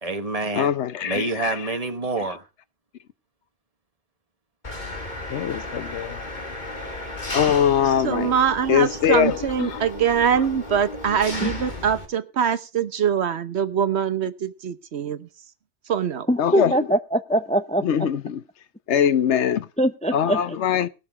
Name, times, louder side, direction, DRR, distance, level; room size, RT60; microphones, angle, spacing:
voice 1, 0.0-0.7 1.0-2.4, right 3 dB, 35° right, 1.4 m, -27 dB
voice 2, 0.5-1.5 5.3-6.2 7.3-8.3 8.7-9.8 16.4-16.7 17.8-18.4 18.9-19.7 20.1-20.9, left 9 dB, 85° left, 1.1 m, -22 dB
Engine, 4.6-12.1, left 2 dB, 40° left, 2.3 m, -34 dB
voice 3, 8.0-15.3 15.9-16.3, right 8 dB, 70° right, 1.2 m, -23 dB
voice 4, 16.3-17.9 19.8-20.6, equal, 10° left, 0.5 m, -22 dB
19.0 x 6.8 x 4.8 m
omnidirectional pair, 1.1 m